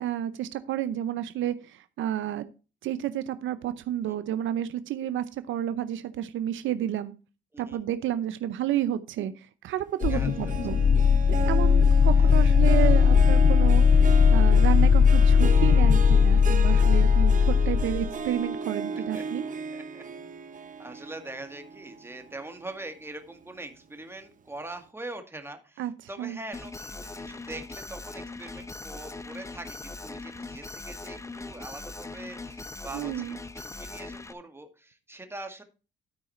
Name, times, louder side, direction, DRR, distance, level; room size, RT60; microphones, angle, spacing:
voice 1, 0.0-2.5 2.8-7.1 7.6-10.8 11.3-19.4 25.8-25.9 26.2-26.4 32.9-33.4, right 11 dB, 75° right, 12 dB, 0.7 m, -31 dB
sound 1, 10.0-18.2, left 6 dB, 40° left, 0.4 m, -19 dB
Harp, 10.0-22.7 23.1-23.5 24.0-24.1, right 5 dB, 40° right, 1.1 m, -35 dB
voice 2, 10.1-10.5 12.2-12.7 19.1-19.3 19.7-20.0 20.8-35.6, right 2 dB, 10° right, 6 dB, 1.9 m, -43 dB
Alarm, 26.5-34.3, left 3 dB, 15° left, 0.7 m, -40 dB
12.5 x 4.7 x 4.2 m, 0.33 s
cardioid pair, 90°, 20 cm